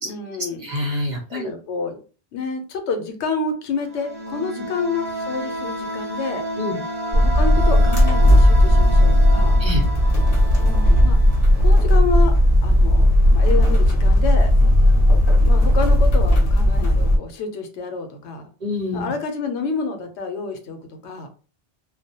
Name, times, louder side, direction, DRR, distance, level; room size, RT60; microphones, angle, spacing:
voice 1, 0.0-0.7 1.3-2.0 2.3-6.4 7.1-9.6 10.6-11.2 11.6-12.3 12.6-14.5 15.4-18.5 18.9-21.3, left 4 dB, 85° left, 6 dB, 0.9 m, -29 dB
voice 2, 0.6-1.5 6.6-6.8 9.6-9.8 18.6-19.1, left 1 dB, 50° right, 0 dB, 0.7 m, -26 dB
sound 1, 3.8-12.4, right 1 dB, 25° left, 0.6 m, -31 dB
sound 2, 7.1-17.2, left 1 dB, 60° left, 0.9 m, -15 dB
2.2 x 2.0 x 2.7 m, 0.36 s
omnidirectional pair, 1.1 m